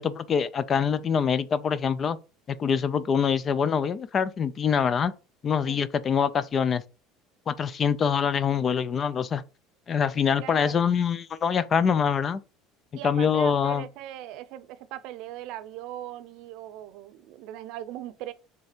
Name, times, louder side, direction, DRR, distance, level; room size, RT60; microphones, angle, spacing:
voice 1, 0.0-2.2 2.5-5.1 5.4-6.8 7.5-9.4 9.9-12.4 13.0-13.9, left 7 dB, 25° left, 0.4 m, -24 dB
voice 2, 10.4-10.9 12.9-18.3, right 13 dB, 60° right, 0.7 m, -39 dB
6.7 x 3.4 x 5.0 m
cardioid pair, 155°, 0 cm